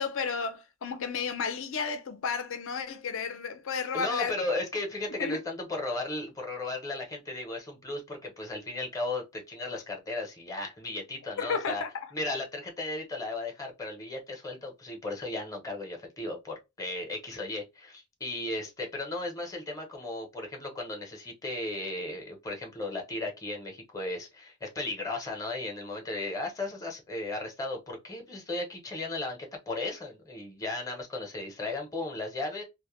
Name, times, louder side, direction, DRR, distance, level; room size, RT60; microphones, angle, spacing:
voice 1, 0.0-4.3 5.2-5.4 11.4-12.1, left 5 dB, 65° left, 0.5 m, -32 dB
voice 2, 3.9-11.8 12.1-29.4 29.7-32.6, left 2 dB, 15° left, 0.6 m, -35 dB
2.1 x 2.0 x 2.9 m
head